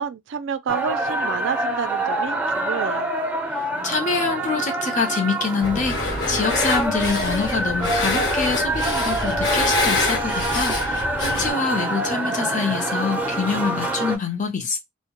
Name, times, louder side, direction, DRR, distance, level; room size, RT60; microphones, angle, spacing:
voice 1, 0.0-3.1, right 7 dB, 65° right, 0.3 m, -29 dB
sound 1, 0.7-14.2, right 1 dB, 10° right, 0.5 m, -26 dB
voice 2, 3.8-14.8, left 4 dB, 40° left, 0.6 m, -25 dB
sound 2, 5.6-11.5, left 2 dB, 65° left, 1.0 m, -26 dB
2.2 x 2.0 x 2.8 m
head